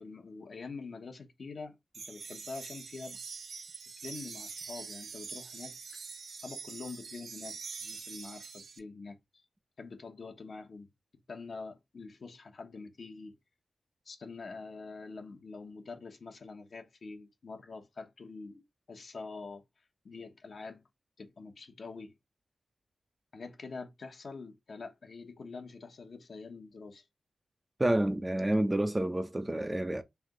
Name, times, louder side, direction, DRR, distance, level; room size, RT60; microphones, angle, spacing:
voice 1, 0.0-1.8 2.1-3.2 4.0-6.0 6.3-9.4 9.8-10.9 11.3-13.3 14.0-18.6 18.9-19.6 20.0-20.8 21.2-22.1 23.3-27.1, left 4 dB, 55° left, 1.0 m, -45 dB
sound 1, 1.9-8.8, right 5 dB, 65° right, 0.6 m, -44 dB
voice 2, 27.8-30.0, right 1 dB, 15° right, 0.6 m, -29 dB
3.4 x 2.7 x 3.7 m
wide cardioid pair, 100°, 0 cm